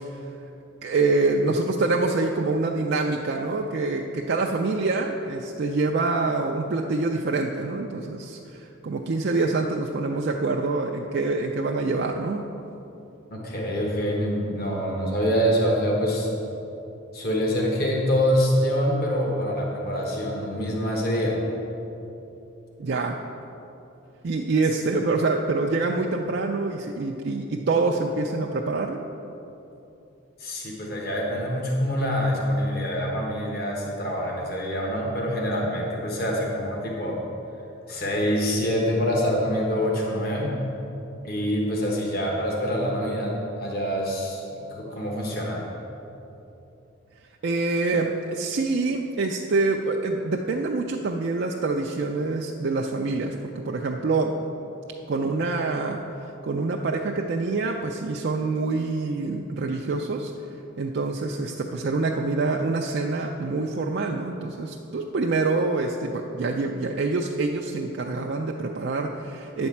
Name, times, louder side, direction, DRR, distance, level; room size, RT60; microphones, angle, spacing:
voice 1, 0.8-12.4 22.8-23.2 24.2-29.0 47.4-54.3 55.1-60.3 60.8-69.7, right 3 dB, 50° right, 0 dB, 0.4 m, -26 dB
voice 2, 13.3-16.3 17.1-21.4 30.4-37.2 37.9-40.5 41.2-45.6, equal, 45° left, -2 dB, 1.3 m, -25 dB
9.2 x 4.3 x 7.1 m, 2.9 s
head